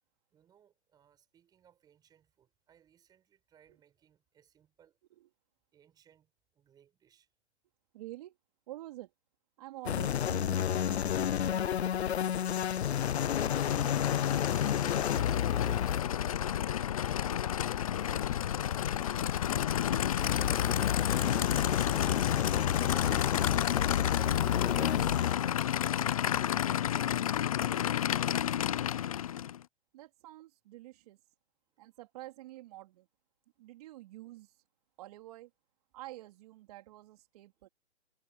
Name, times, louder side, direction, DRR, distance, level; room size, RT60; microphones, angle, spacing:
voice 1, 0.3-5.0 5.7-7.3 14.4-15.3 16.5-17.2 17.9-19.6 21.3-22.9 25.1-25.8 26.3-27.4 28.0-28.6 31.7-32.0 37.6-37.7, right 9 dB, 10° right, 7.2 m, -64 dB
voice 2, 7.9-8.3 8.7-9.1 9.6-12.6 29.9-31.2 31.8-33.1 33.6-34.6 35.0-35.5 35.9-37.7, right 16 dB, 35° right, 3.9 m, -48 dB
sound 1, 9.9-25.4, left 9 dB, 65° left, 0.7 m, -31 dB
Aircraft / Idling, 12.7-29.6, left 10 dB, 30° left, 0.7 m, -32 dB
hypercardioid pair, 160°, 34 cm